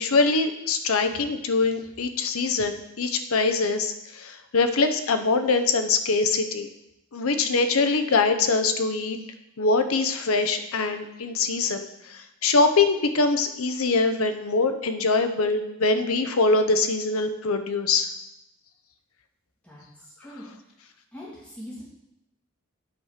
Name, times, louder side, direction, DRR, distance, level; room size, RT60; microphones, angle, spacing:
voice 1, 0.0-6.7 7.1-9.2 9.6-18.1, left 3 dB, 80° left, 8 dB, 0.7 m, -23 dB
voice 2, 21.1-21.8, left 1 dB, 5° left, -7 dB, 2.6 m, -41 dB
8.3 x 4.8 x 5.7 m, 0.85 s
head